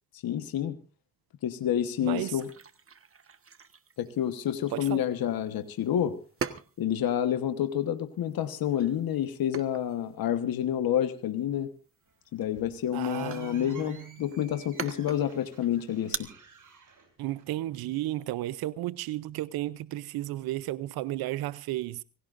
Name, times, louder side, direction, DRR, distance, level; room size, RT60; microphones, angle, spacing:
voice 1, 0.2-0.8 1.4-2.5 4.0-6.2 6.8-11.7 12.3-16.3, left 10 dB, 75° left, 1.3 m, -29 dB
voice 2, 2.0-2.4 4.7-5.0 12.9-14.0 17.2-22.0, right 15 dB, 85° right, 0.6 m, -33 dB
sound 1, 2.4-16.2, right 5 dB, 40° right, 1.4 m, -43 dB
sound 2, 12.0-17.8, right 6 dB, 60° right, 6.4 m, -54 dB
25.5 x 17.0 x 2.6 m
supercardioid pair, 60°, 36 cm